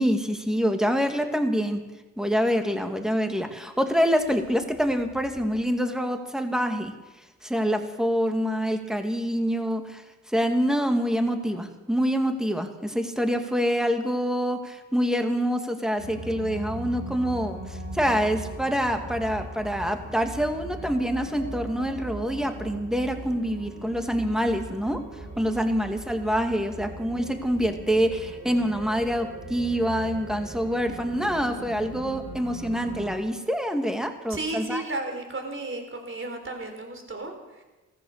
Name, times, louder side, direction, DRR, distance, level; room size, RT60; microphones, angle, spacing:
voice 1, 0.0-1.8 2.2-6.9 7.4-10.0 10.3-25.0 25.4-34.8, equal, ahead, 5 dB, 2.3 m, -26 dB
sound 1, 16.0-33.2, right 2 dB, 65° right, 3.2 m, -39 dB
voice 2, 34.3-37.3, right 2 dB, 40° right, 4 dB, 3.9 m, -33 dB
14.5 x 14.5 x 6.7 m, 1.1 s
cardioid pair, 55°, 31 cm